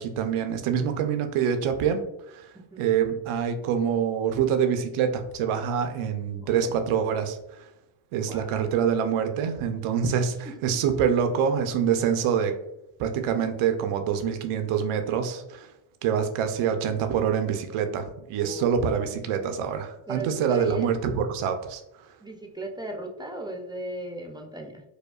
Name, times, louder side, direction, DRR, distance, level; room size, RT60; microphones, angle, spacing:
voice 1, 0.0-2.5 2.8-7.7 8.1-12.5 13.0-15.7 16.0-22.1, right 7 dB, 90° right, 7 dB, 0.6 m, -26 dB
voice 2, 6.4-6.8 8.2-8.5 18.4-18.6 20.1-20.9 22.2-24.8, right 2 dB, 10° right, 2 dB, 0.4 m, -36 dB
4.9 x 2.2 x 2.3 m, 0.87 s
cardioid pair, 80°, 48 cm